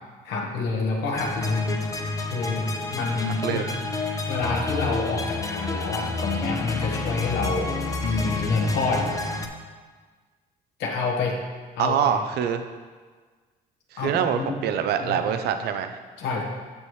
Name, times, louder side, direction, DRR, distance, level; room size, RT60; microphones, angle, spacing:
voice 1, 0.2-1.8 2.3-2.7 2.9-3.7 4.3-7.7 8.0-9.1 10.8-11.4 11.8-11.9 14.0-14.6 15.0-15.2 16.2-16.4, left 3 dB, 85° left, -1 dB, 1.5 m, -27 dB
sound 1, 1.1-9.5, left 3 dB, 20° left, 0.7 m, -30 dB
voice 2, 11.8-12.6 13.9-16.0, right 8 dB, 70° right, 8 dB, 0.6 m, -25 dB
8.3 x 7.1 x 3.2 m, 1.5 s
cardioid pair, 110°, 17 cm